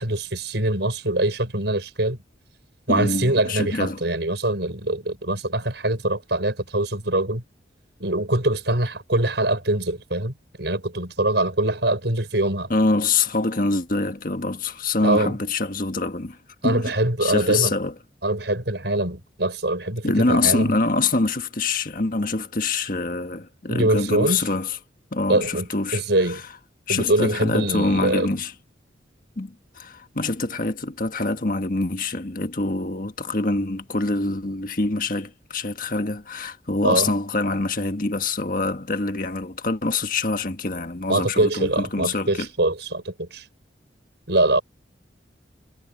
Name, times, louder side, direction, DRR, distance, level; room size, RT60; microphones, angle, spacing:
voice 1, 0.0-2.2 2.9-7.4 8.0-12.7 15.0-15.4 16.6-17.7 18.2-20.7 23.7-24.4 25.3-26.4 26.9-28.3 36.8-37.1 41.1-43.4 44.3-44.6, right 2 dB, 70° right, 5.4 m, -23 dB
voice 2, 2.9-4.0 12.7-16.4 16.6-16.9 17.2-17.9 20.0-24.8 25.1-26.0 26.3-26.4 26.9-28.5 29.4-42.5, left 3 dB, 50° left, 1.6 m, -25 dB
head